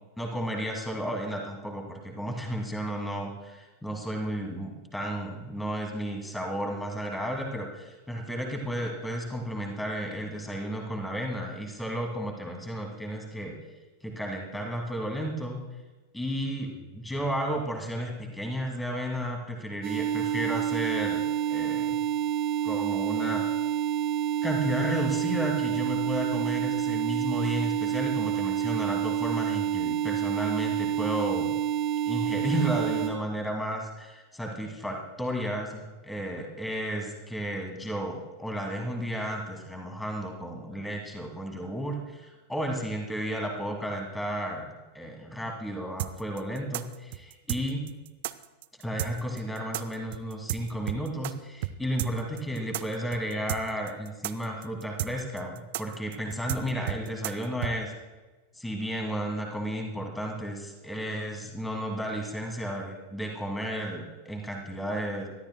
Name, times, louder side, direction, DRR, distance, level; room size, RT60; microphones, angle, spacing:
voice 1, 0.2-13.5 14.0-15.6 16.1-21.2 21.5-22.0 22.6-23.4 24.4-31.5 32.1-47.9 48.8-57.9 58.6-65.3, equal, 5° left, 2 dB, 2.4 m, -33 dB
sound 1, 19.8-33.1, right 9 dB, 35° right, 3.0 m, -28 dB
sound 2, 46.0-51.3 51.6-51.7 52.0-57.7, right 15 dB, 50° right, 0.5 m, -33 dB
23.5 x 13.0 x 2.2 m, 1.2 s
figure-of-eight pair, 90°, 0 cm